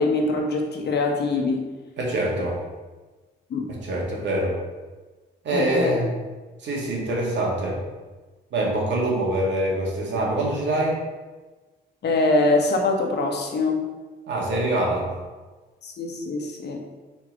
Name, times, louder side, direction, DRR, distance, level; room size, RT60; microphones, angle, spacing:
voice 1, 0.0-1.6 3.5-3.7 5.5-5.9 12.0-13.8 15.8-16.8, left 2 dB, 60° left, 2 dB, 1.2 m, -23 dB
voice 2, 2.0-2.6 3.7-4.6 5.4-6.1 6.6-7.8 8.5-11.0 14.3-15.1, right 1 dB, 65° right, -3 dB, 1.9 m, -24 dB
4.8 x 4.4 x 5.2 m, 1.3 s
cardioid pair, 90°, 20 cm